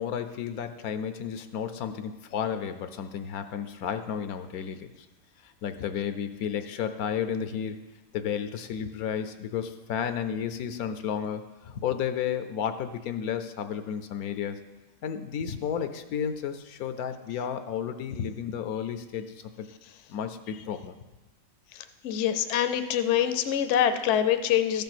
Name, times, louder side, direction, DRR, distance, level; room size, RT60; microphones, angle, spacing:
voice 1, 0.0-4.9 5.4-7.8 8.1-11.4 11.8-14.6 15.0-19.7 20.1-20.9, left 8 dB, 85° left, 9 dB, 1.2 m, -32 dB
voice 2, 22.0-24.8, left 10 dB, 65° left, 10 dB, 0.9 m, -25 dB
13.5 x 5.4 x 6.0 m, 1.1 s
omnidirectional pair, 1.5 m